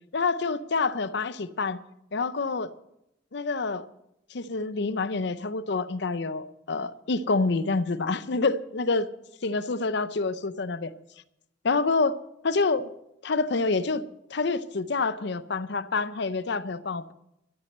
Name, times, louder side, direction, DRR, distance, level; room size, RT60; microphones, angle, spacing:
voice 1, 0.1-1.8 2.1-2.7 3.3-3.9 4.3-9.1 9.4-10.9 11.6-12.2 12.4-12.9 13.2-14.0 14.3-17.1, left 3 dB, 60° left, 0.6 m, -27 dB
12.5 x 8.5 x 7.9 m
head